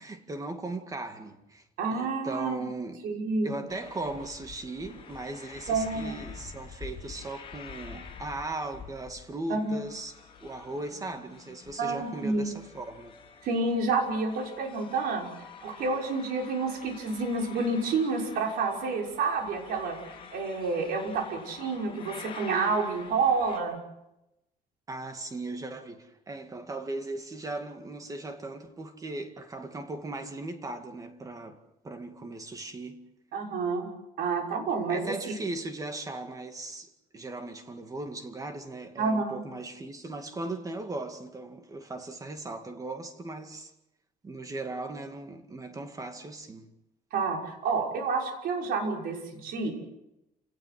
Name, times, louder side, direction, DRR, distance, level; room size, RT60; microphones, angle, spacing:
voice 1, 0.0-1.7 1.9-3.0 3.4-10.2 10.4-13.1 24.9-31.6 31.8-33.0 34.9-43.7 44.2-46.7, right 2 dB, 20° right, 2.2 m, -38 dB
voice 2, 1.8-2.7 3.0-3.5 5.7-6.2 9.5-9.8 11.8-12.5 13.4-15.3 15.6-20.0 20.3-23.8 33.3-33.9 34.2-35.3 39.0-39.4 47.1-49.7, right 4 dB, 70° right, 6.0 m, -29 dB
sound 1, 3.7-23.6, left 6 dB, 35° left, 6.9 m, -48 dB
29.0 x 18.5 x 7.8 m
cardioid pair, 140°, 16 cm